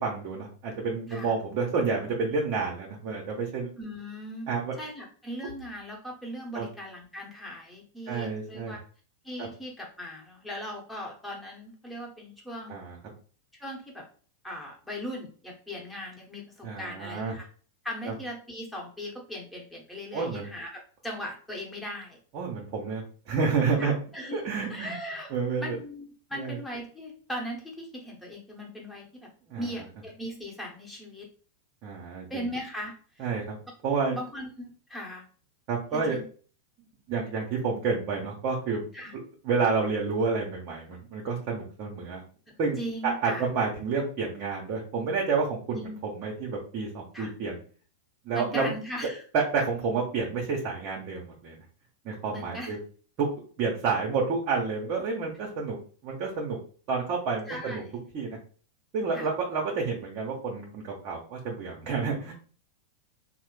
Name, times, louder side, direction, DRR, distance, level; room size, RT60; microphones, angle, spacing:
voice 1, 0.0-3.7 4.5-4.7 6.5-6.7 8.1-8.7 9.4-9.5 12.7-13.0 16.6-17.3 18.1-18.2 20.1-20.5 22.3-23.9 24.3-24.9 25.3-25.8 26.3-26.6 29.5-29.7 31.8-32.5 33.2-33.6 33.8-34.2 35.7-36.2 37.1-38.8 39.4-42.2 42.6-42.8 43.0-47.6 48.2-48.7 49.3-51.6 52.0-52.8 53.2-53.3 53.6-55.8 56.0-56.6 56.9-57.8 58.1-58.4 58.9-62.3, right 4 dB, 50° right, -1 dB, 0.9 m, -29 dB
voice 2, 3.8-8.8 9.2-12.8 13.6-14.0 14.4-17.5 17.8-22.2 23.8-24.4 24.7-25.3 25.6-26.0 26.3-29.3 29.6-31.3 32.3-33.3 34.1-35.3 35.9-36.2 38.9-39.1 42.5-43.5 45.7-46.0 47.1-47.3 48.3-49.2 52.3-52.7 57.5-57.9 59.1-59.3, equal, 5° left, -2 dB, 1.2 m, -38 dB
3.1 x 2.1 x 3.2 m, 0.42 s
hypercardioid pair, 110°, 0 cm